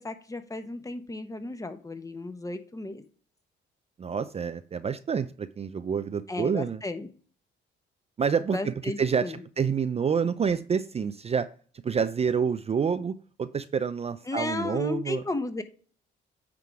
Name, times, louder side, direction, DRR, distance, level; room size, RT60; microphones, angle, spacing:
voice 1, 0.0-3.0 6.3-7.1 8.5-9.4 14.3-15.6, left 2 dB, 15° left, 8 dB, 1.1 m, -34 dB
voice 2, 4.0-6.8 8.2-11.5 11.8-15.2, right 6 dB, 30° right, 11 dB, 0.4 m, -28 dB
9.4 x 3.7 x 4.8 m, 0.42 s
cardioid pair, 90°, 20 cm